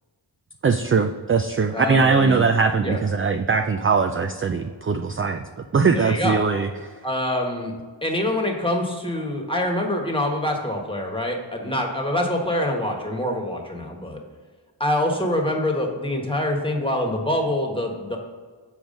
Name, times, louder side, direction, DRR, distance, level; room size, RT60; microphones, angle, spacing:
voice 1, 0.6-5.5 5.7-6.7, right 5 dB, 30° right, 6 dB, 0.4 m, -21 dB
voice 2, 1.7-2.5 2.8-3.0 5.9-6.4 7.0-7.7 8.0-14.2 14.8-18.2, left 1 dB, 10° left, 1 dB, 1.4 m, -25 dB
7.2 x 4.6 x 5.2 m, 1.5 s
wide cardioid pair, 55°, 44 cm